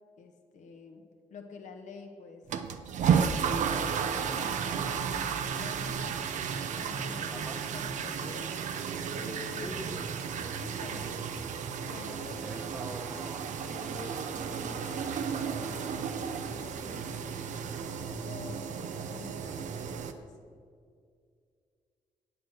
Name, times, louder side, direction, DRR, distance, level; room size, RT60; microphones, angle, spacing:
voice 1, 0.2-2.4 3.1-4.0 4.3-6.2 6.7-8.6 9.1-9.8 10.3-11.2 11.8-12.7 13.5-17.4 18.2-20.5, left 4 dB, 80° left, 4 dB, 1.2 m, -48 dB
sound 1, 2.5-20.1, right 7 dB, 80° right, 0.7 m, -33 dB
voice 2, 7.3-7.6 9.6-10.1 12.4-13.6, right 1 dB, 15° right, 3 dB, 0.6 m, -44 dB
9.3 x 7.9 x 6.5 m, 2.2 s
cardioid pair, 115°, 12 cm